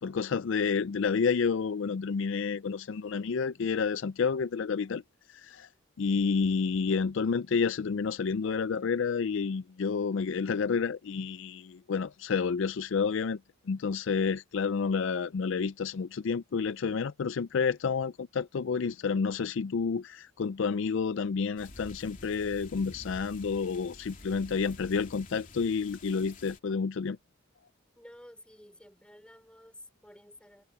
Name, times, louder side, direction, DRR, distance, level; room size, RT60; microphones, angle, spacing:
voice 1, 0.0-5.0 5.3-5.7 6.0-13.4 13.7-27.2, left 5 dB, 60° left, 0.4 m, -30 dB
sound 1, 21.6-26.6, left 2 dB, 40° left, 2.8 m, -49 dB
voice 2, 28.0-30.6, left 1 dB, 5° left, 4.8 m, -53 dB
head